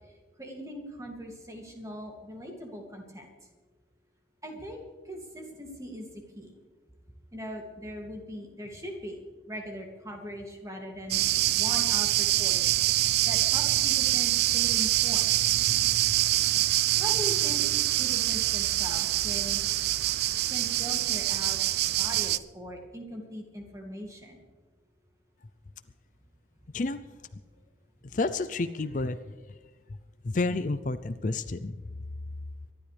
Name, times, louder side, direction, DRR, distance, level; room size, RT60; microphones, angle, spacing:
voice 1, 0.4-3.3 4.4-6.5 7.3-9.2 9.5-12.6 13.3-15.3 17.0-17.6 17.9-19.7 20.5-21.6 22.0-24.4, equal, 20° right, 1 dB, 2.4 m, -40 dB
sound 1, 11.1-22.4, right 15 dB, 60° right, 0.4 m, -25 dB
voice 2, 28.1-29.2 30.2-31.8, left 3 dB, 45° left, 12 dB, 0.5 m, -29 dB
24.5 x 12.5 x 3.4 m, 1.4 s
head